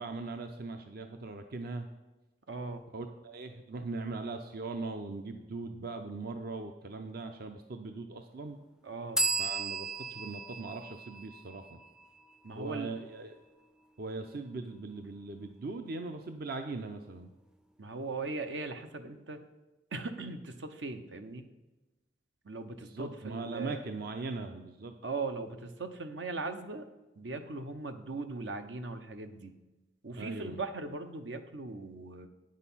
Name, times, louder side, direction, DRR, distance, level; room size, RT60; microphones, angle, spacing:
voice 1, 0.0-1.9 2.9-8.6 9.4-11.8 12.6-13.4 14.0-17.3 22.8-25.0 30.2-30.6, right 3 dB, 60° right, 6 dB, 0.6 m, -40 dB
voice 2, 2.5-2.8 8.8-9.2 12.4-12.9 17.8-19.4 19.9-21.4 22.4-23.8 25.0-26.9 27.2-29.6 30.0-32.3, right 3 dB, 80° right, 8 dB, 0.8 m, -39 dB
sound 1, 9.2-12.7, right 3 dB, 5° right, 0.4 m, -35 dB
9.0 x 6.5 x 5.6 m, 1.1 s
head